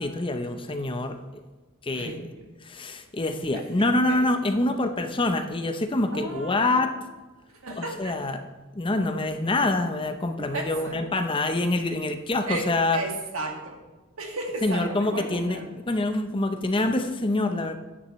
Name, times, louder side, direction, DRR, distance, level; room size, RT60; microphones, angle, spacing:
voice 1, 0.0-1.4 1.8-2.3 2.6-7.0 7.8-8.4 8.8-13.0 14.6-15.6 15.9-17.8, left 2 dB, 25° left, 7 dB, 0.7 m, -26 dB
voice 2, 1.9-2.5 3.5-3.6 4.1-4.2 6.1-6.9 7.6-8.4 10.4-11.0 12.5-13.8 14.2-15.8, right 2 dB, 75° right, 1 dB, 2.0 m, -34 dB
12.5 x 9.8 x 3.1 m, 1.2 s
head